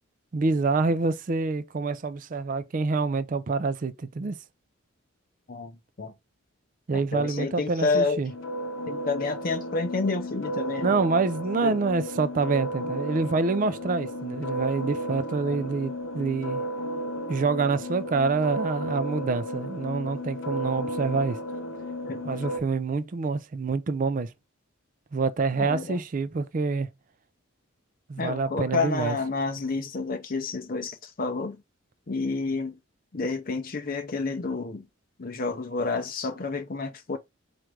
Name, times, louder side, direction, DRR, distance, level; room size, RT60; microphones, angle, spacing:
voice 1, 0.3-4.4 6.9-8.3 10.8-16.6 17.3-21.4 22.2-24.3 25.1-26.9 28.1-29.2, right 4 dB, 40° right, 0.4 m, -26 dB
voice 2, 6.9-8.2 8.9-10.9 11.6-11.8 15.4-15.6 20.8-21.0 22.1-22.2 25.6-26.0 28.2-31.6 32.1-32.8 33.1-34.9 35.2-37.2, left 3 dB, 40° left, 0.6 m, -29 dB
sound 1, 8.3-22.6, equal, 75° left, 1.0 m, -33 dB
4.5 x 2.5 x 4.6 m
head